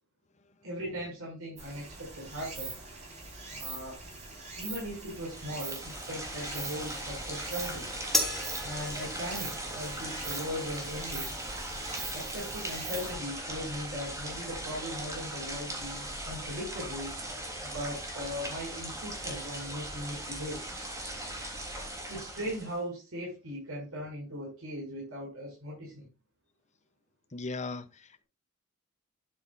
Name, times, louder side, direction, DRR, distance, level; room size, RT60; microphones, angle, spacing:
voice 1, 0.6-2.7 3.5-4.0 4.6-7.9 8.6-11.3 12.1-17.1 17.6-20.7 22.1-26.1, equal, 70° right, 6.6 m, -39 dB
Stream, 1.6-13.1, right 4 dB, 35° right, 4.6 m, -43 dB
sound 1, 5.1-22.8, right 1 dB, 15° right, 3.3 m, -39 dB
sound 2, 8.1-14.7, left 1 dB, ahead, 2.3 m, -38 dB
voice 2, 27.3-28.2, left 3 dB, 35° left, 0.8 m, -38 dB
12.5 x 9.7 x 2.6 m
head